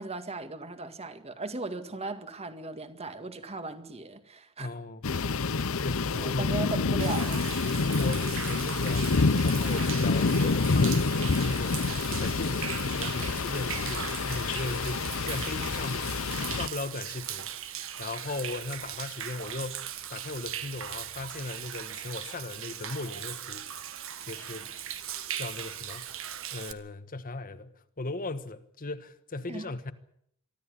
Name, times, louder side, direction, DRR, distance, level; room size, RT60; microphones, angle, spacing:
voice 1, 0.0-4.7 6.1-7.5 29.5-29.7, right 3 dB, 30° right, 1.9 m, -37 dB
voice 2, 4.6-5.0 5.8-6.9 8.0-9.1 9.4-16.1 16.5-23.7 24.3-24.7 25.4-26.1 26.5-29.9, left 2 dB, 40° left, 1.3 m, -37 dB
sound 1, 5.0-16.7, left 4 dB, 70° left, 0.8 m, -28 dB
Human voice / Rain / Stream, 7.0-26.7, right 9 dB, 65° right, 1.6 m, -39 dB
23.5 x 13.5 x 10.0 m
head